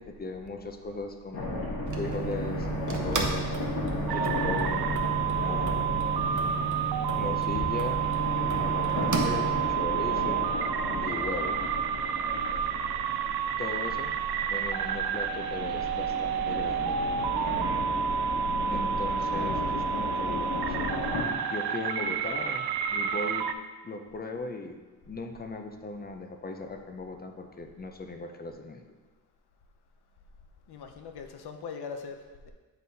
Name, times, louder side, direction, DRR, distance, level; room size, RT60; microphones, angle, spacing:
voice 1, 0.0-1.5 1.9-3.6 4.1-4.9 5.4-6.0 7.2-8.0 8.6-10.5 11.0-11.6 13.6-14.2 14.5-17.0 18.7-20.8 21.5-23.5 23.8-24.8 25.1-28.8, left 3 dB, 25° left, 5 dB, 0.6 m, -37 dB
sound 1, 1.3-21.2, left 2 dB, 65° left, 1.4 m, -34 dB
sound 2, 1.9-9.7, right 6 dB, 50° right, 0.8 m, -34 dB
sound 3, 4.1-23.5, right 8 dB, 85° right, 0.5 m, -30 dB
voice 2, 30.7-32.5, left 5 dB, 85° left, 5 dB, 0.8 m, -41 dB
8.4 x 4.1 x 4.1 m, 1.3 s
wide cardioid pair, 130°, 38 cm